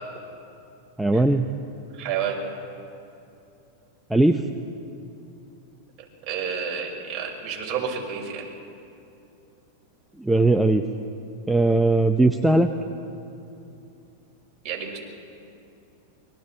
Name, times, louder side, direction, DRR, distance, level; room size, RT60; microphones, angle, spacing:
voice 1, 1.0-1.5 4.1-4.4 10.2-10.9 11.5-12.7, right 2 dB, 5° right, 5 dB, 0.8 m, -19 dB
voice 2, 1.9-2.4 6.2-8.4 14.6-15.0, right 7 dB, 40° right, -1 dB, 6.1 m, -30 dB
29.0 x 23.5 x 4.6 m, 2.7 s
hypercardioid pair, 120°, 0 cm